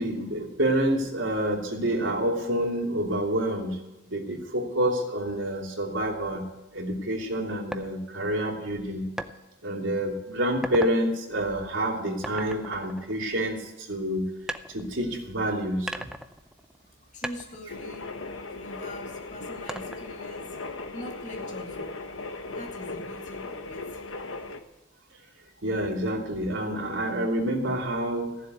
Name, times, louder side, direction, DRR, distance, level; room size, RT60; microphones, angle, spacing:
voice 1, 0.0-3.8 4.1-6.4 6.7-9.1 9.6-14.3 14.7-16.0 25.6-28.4, right 1 dB, 70° right, 0 dB, 2.9 m, -28 dB
sound 1, 7.7-7.9 9.2-9.4 9.9-10.1 10.5-11.0 12.2-13.7 14.5-15.4 15.9-16.9 17.2-18.8 19.7-20.3, right 1 dB, 5° right, 0.5 m, -37 dB
voice 2, 17.1-18.1 18.5-20.6 20.9-22.0 22.5-24.0, left 1 dB, 35° left, 0 dB, 2.3 m, -43 dB
sound 2, 17.7-24.6, left 3 dB, 75° left, 1.2 m, -38 dB
16.0 x 7.4 x 9.4 m, 0.96 s
head